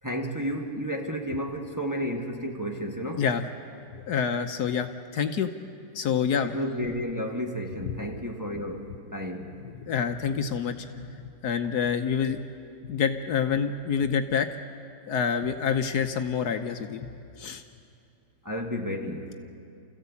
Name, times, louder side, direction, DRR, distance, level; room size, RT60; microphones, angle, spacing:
voice 1, 0.0-3.2 6.4-9.5 18.4-19.3, equal, 10° right, 0 dB, 1.6 m, -32 dB
voice 2, 4.1-5.5 5.9-6.6 9.8-11.2 11.4-12.4 12.9-14.5 15.1-17.1 17.4-17.6, left 7 dB, 65° left, 7 dB, 1.4 m, -27 dB
29.5 x 14.5 x 8.4 m, 2.5 s
omnidirectional pair, 1.9 m